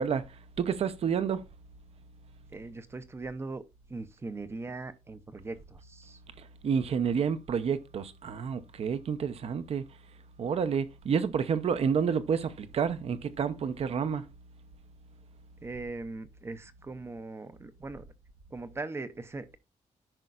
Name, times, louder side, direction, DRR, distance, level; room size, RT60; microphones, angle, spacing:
voice 1, 0.0-1.4 6.4-9.8 10.4-14.3, right 6 dB, 50° right, 0.7 m, -29 dB
voice 2, 2.5-3.6 3.9-6.2 15.6-18.0 18.5-19.6, right 3 dB, 20° right, 0.6 m, -40 dB
13.5 x 5.5 x 2.4 m
wide cardioid pair, 175°, 13 cm